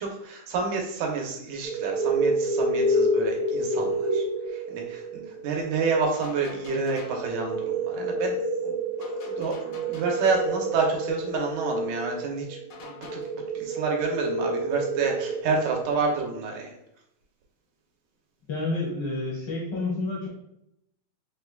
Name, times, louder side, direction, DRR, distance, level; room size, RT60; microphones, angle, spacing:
voice 1, 0.0-16.7, right 4 dB, 80° right, 1 dB, 2.2 m, -29 dB
sound 1, 1.6-15.8, right 1 dB, 50° right, 1.3 m, -29 dB
sound 2, 6.1-7.3 9.0-10.6 12.7-13.2, left 5 dB, 85° left, 1.1 m, -46 dB
voice 2, 18.5-20.3, left 2 dB, 70° left, -3 dB, 1.3 m, -29 dB
5.2 x 3.3 x 2.3 m, 0.78 s
omnidirectional pair, 3.5 m